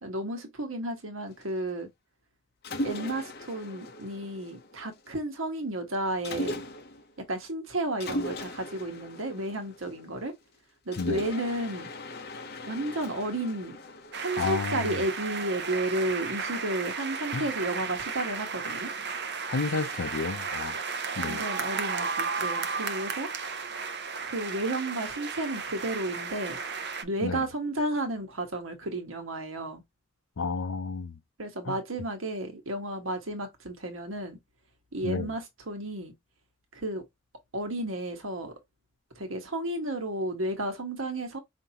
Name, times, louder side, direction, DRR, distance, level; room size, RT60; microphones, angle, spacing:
voice 1, 0.0-1.9 2.8-6.6 7.2-10.3 10.8-11.9 12.7-13.8 14.2-18.9 21.2-23.3 24.2-26.6 27.0-29.8 31.4-34.4 34.9-36.1 36.7-37.0 37.5-38.5 39.1-41.4, right 1 dB, 85° right, 1.4 m, -32 dB
Mechanisms, 2.6-5.1 6.2-7.1 8.0-10.3 10.9-15.1, left 1 dB, 50° left, 0.9 m, -38 dB
sound 1, 14.1-27.0, right 5 dB, 55° right, 0.7 m, -34 dB
voice 2, 14.4-15.0 17.3-17.5 19.5-20.8 21.2-21.4 27.2-27.4 30.4-31.2 31.7-31.8 35.0-35.3, left 4 dB, 75° left, 0.6 m, -31 dB
5.2 x 2.8 x 2.9 m
head